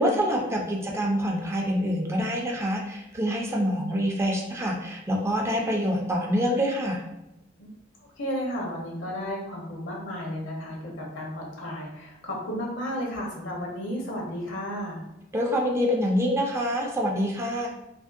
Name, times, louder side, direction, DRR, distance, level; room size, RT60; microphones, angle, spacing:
voice 1, 0.0-7.0 15.3-17.7, equal, 15° right, -1 dB, 0.4 m, -26 dB
voice 2, 8.2-15.0, equal, 75° left, -2 dB, 0.8 m, -33 dB
2.9 x 2.6 x 2.4 m, 0.89 s
head